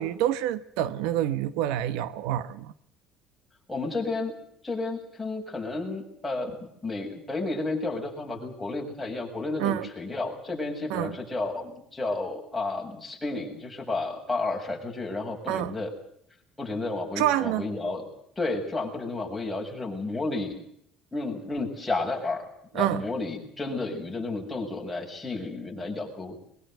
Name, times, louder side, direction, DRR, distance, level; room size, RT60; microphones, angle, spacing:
voice 1, 0.0-2.7 9.6-9.9 10.9-11.1 15.5-15.7 17.2-17.6 22.7-23.0, right 12 dB, 85° right, 1.1 m, -27 dB
voice 2, 3.7-4.4 4.6-15.9 16.6-18.0 18.4-20.6 21.1-22.5 22.7-26.4, left 2 dB, 5° left, 7.6 m, -32 dB
22.5 x 22.0 x 8.0 m
cardioid pair, 110°, 0 cm